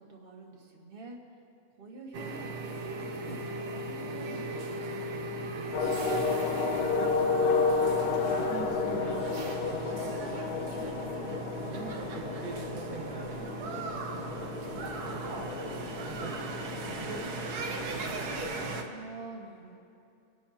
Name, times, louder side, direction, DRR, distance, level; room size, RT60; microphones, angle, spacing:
voice 1, 0.1-1.2 1.8-2.7 3.2-3.4 3.7-5.2 11.0-11.8 18.8-19.8, right 2 dB, 35° right, 0 dB, 1.8 m, -46 dB
sound 1, 2.1-18.8, right 3 dB, 90° right, 1.6 m, -38 dB
sound 2, 5.7-18.9, left 4 dB, 85° left, 1.3 m, -32 dB
voice 2, 6.0-11.0 11.7-18.5, right 3 dB, 70° right, 0 dB, 1.4 m, -45 dB
25.0 x 11.5 x 2.8 m, 2.6 s
omnidirectional pair, 1.6 m